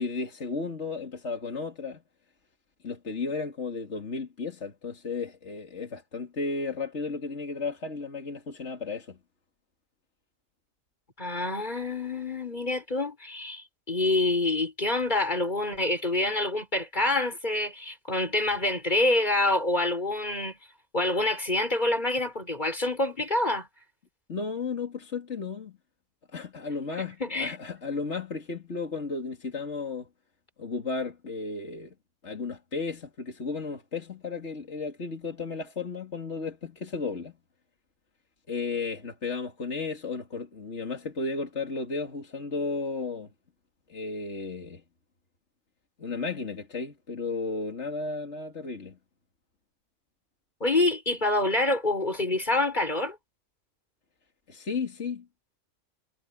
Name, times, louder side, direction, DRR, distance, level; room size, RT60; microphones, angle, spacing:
voice 1, 0.0-2.0 2.8-9.2 24.3-25.8 26.3-30.1 30.6-31.9 32.2-37.3 38.5-43.3 43.9-44.8 46.0-49.0 54.5-55.3, left 4 dB, 65° left, 2.8 m, -34 dB
voice 2, 11.2-20.6 20.9-23.7 27.2-27.6 50.6-53.2, left 2 dB, 35° left, 5.4 m, -27 dB
omnidirectional pair, 1.3 m